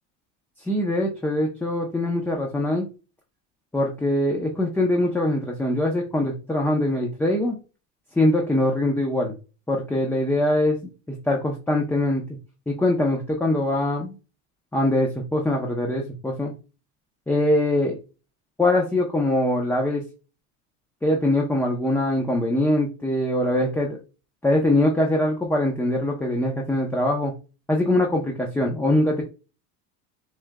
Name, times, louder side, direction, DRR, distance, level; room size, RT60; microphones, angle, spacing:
voice 1, 0.6-2.8 3.7-7.6 8.2-9.3 9.7-10.8 11.3-12.2 12.7-14.1 14.7-16.5 17.3-18.0 18.6-20.0 21.0-24.0 24.4-27.3 27.7-29.2, left 1 dB, 5° left, 0 dB, 0.6 m, -22 dB
6.3 x 3.5 x 2.2 m, 0.32 s
cardioid pair, 140°, 40 cm